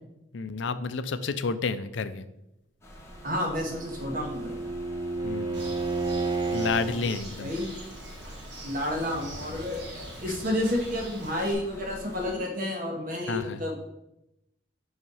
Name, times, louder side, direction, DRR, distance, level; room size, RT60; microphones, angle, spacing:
voice 1, 0.3-2.3 5.2-5.6 6.5-7.5 13.3-13.6, left 4 dB, 70° left, 12 dB, 0.5 m, -30 dB
sound 1, 2.8-12.4, equal, 15° left, 1.4 m, -47 dB
voice 2, 3.2-4.6 6.9-7.7 8.6-13.8, left 1 dB, 45° right, 1 dB, 1.5 m, -31 dB
Bowed string instrument, 3.3-7.0, right 3 dB, 20° right, 0.6 m, -31 dB
Bird, 5.5-11.5, right 1 dB, 65° right, 1.8 m, -44 dB
5.7 x 5.6 x 5.5 m, 0.88 s
head